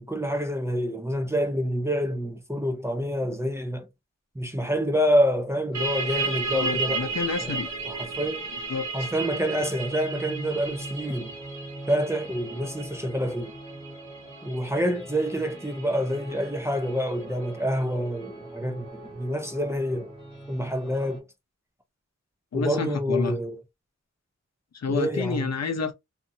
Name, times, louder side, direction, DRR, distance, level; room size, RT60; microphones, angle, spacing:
voice 1, 0.0-3.9 4.3-7.1 7.4-7.6 7.9-8.5 8.9-11.3 11.9-13.5 14.4-20.1 20.5-21.2 22.5-23.6 24.9-25.5, equal, 10° right, 0.6 m, -27 dB
sound 1, 5.7-21.2, right 2 dB, 15° left, 1.5 m, -43 dB
sound 2, 5.7-17.1, right 4 dB, 65° right, 1.2 m, -34 dB
voice 2, 6.5-7.7 8.7-9.1 22.5-23.4 24.7-25.9, left 5 dB, 60° left, 0.7 m, -29 dB
2.7 x 2.5 x 2.6 m
wide cardioid pair, 100°, 30 cm